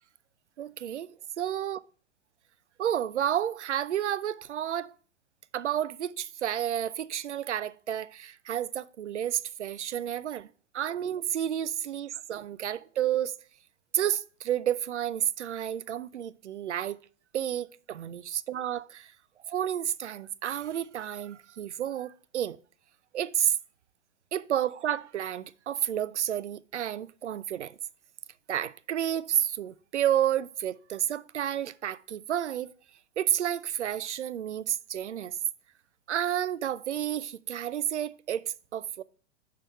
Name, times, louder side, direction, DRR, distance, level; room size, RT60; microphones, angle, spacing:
voice 1, 0.6-1.1 1.4-1.8 2.8-4.9 5.5-10.5 10.7-13.3 13.9-17.0 17.3-19.1 19.5-22.6 23.1-23.6 24.3-27.8 28.5-32.7 33.2-35.4 36.1-39.0, right 10 dB, 75° right, 0.5 m, -31 dB
5.7 x 5.5 x 4.7 m
figure-of-eight pair, 105°, 35 cm